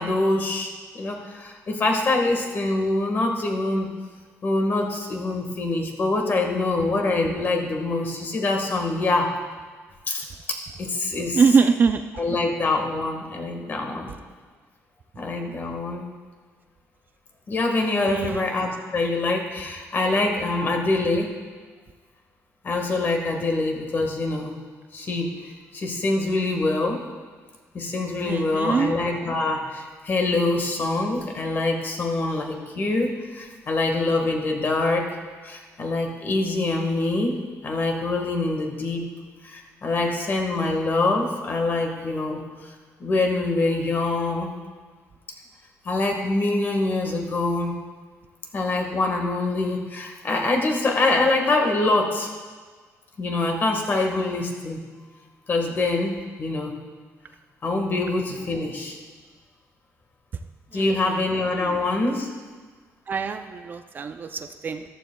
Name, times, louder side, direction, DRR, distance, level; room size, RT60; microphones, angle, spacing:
voice 1, 0.0-3.9 4.4-9.3 10.1-11.4 12.1-14.1 15.1-16.0 17.5-21.3 22.6-24.5 24.9-27.0 27.7-35.1 35.4-37.4 37.6-39.0 39.4-42.4 43.0-44.5 45.8-47.7 48.5-52.3 53.2-54.8 55.5-56.7 57.6-59.0 60.7-62.3, left 2 dB, 35° left, 3 dB, 1.5 m, -25 dB
voice 2, 11.3-12.0 18.1-18.4 28.2-29.0 60.7-61.2 61.5-61.8 63.1-64.8, right 5 dB, 35° right, 8 dB, 0.4 m, -23 dB
14.0 x 12.0 x 2.3 m, 1.5 s
cardioid pair, 145°, 6 cm